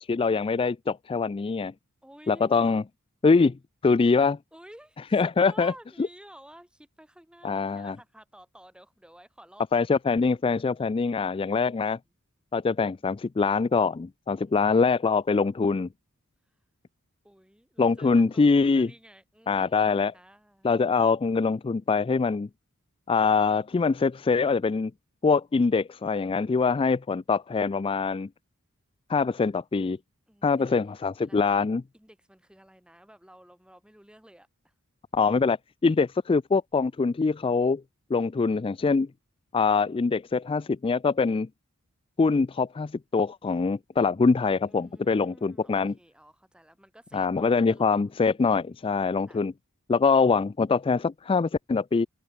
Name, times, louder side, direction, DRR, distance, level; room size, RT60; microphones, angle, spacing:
voice 1, 0.0-1.7 2.3-2.8 3.2-3.6 3.8-4.4 5.1-5.7 7.4-7.9 9.7-12.0 12.5-15.9 17.8-18.9 19.5-20.1 20.6-22.5 23.1-24.9 25.2-28.3 29.1-30.0 30.4-31.8 35.1-35.6 35.8-37.8 38.1-39.1 39.5-41.5 42.2-45.9 47.1-49.5 49.9-52.1, left 4 dB, 25° left, 0.3 m, -24 dB
voice 2, 2.0-2.8 4.5-9.9 14.3-14.7 17.2-20.7 30.3-34.7 44.7-48.6 49.3-49.4, right 1 dB, 5° right, 2.5 m, -53 dB
head